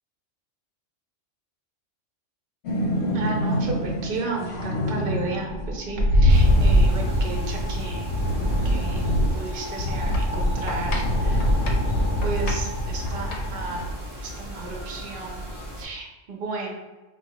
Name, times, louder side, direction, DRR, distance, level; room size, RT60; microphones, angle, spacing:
windy future city, 2.6-13.9, equal, 70° left, 0.8 m, -23 dB
voice 1, 3.1-8.1 8.6-9.1 9.3-11.5 12.2-13.8 14.2-15.4 15.8-16.7, right 3 dB, 55° right, -1 dB, 0.8 m, -33 dB
sound 1, 6.3-15.8, right 1 dB, 15° right, 0.7 m, -37 dB
4.4 x 2.1 x 2.8 m, 1.1 s
omnidirectional pair, 1.3 m